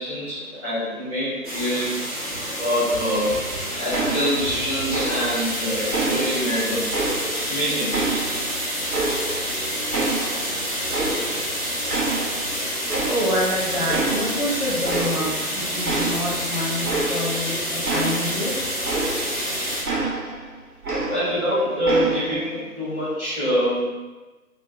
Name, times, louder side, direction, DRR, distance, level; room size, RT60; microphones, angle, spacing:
voice 1, 0.0-1.9 2.6-3.4 3.8-6.9 7.5-8.0 21.1-23.8, equal, 10° right, -11 dB, 1.4 m, -25 dB
sound 1, 1.4-19.8, equal, 35° right, 1.2 m, -28 dB
sound 2, 3.9-4.6 4.9-5.5 5.9-7.5 7.9-9.6 9.9-11.5 11.9-12.6 12.9-13.5 13.9-14.5 14.8-15.5 15.8-19.5 19.9-21.5 21.8-22.5, right 3 dB, 80° right, 0.9 m, -28 dB
voice 2, 13.1-18.5, left 1 dB, 40° left, -6 dB, 0.7 m, -27 dB
5.1 x 2.1 x 2.7 m, 1.2 s
figure-of-eight pair, 155°, 45 cm